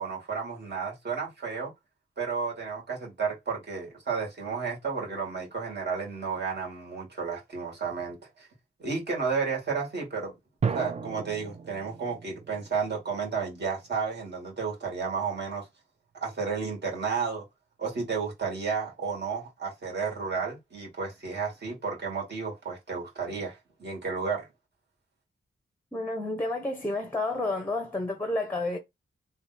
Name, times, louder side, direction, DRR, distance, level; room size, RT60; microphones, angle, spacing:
voice 1, 0.0-1.7 2.2-8.5 8.8-10.3 10.7-15.7 16.2-17.4 17.8-24.5, right 5 dB, 55° right, 2.2 m, -32 dB
sound 1, 10.6-14.1, right 5 dB, 30° right, 0.4 m, -35 dB
voice 2, 25.9-28.8, left 2 dB, 10° left, 0.7 m, -30 dB
3.4 x 2.8 x 4.1 m
wide cardioid pair, 160°, 21 cm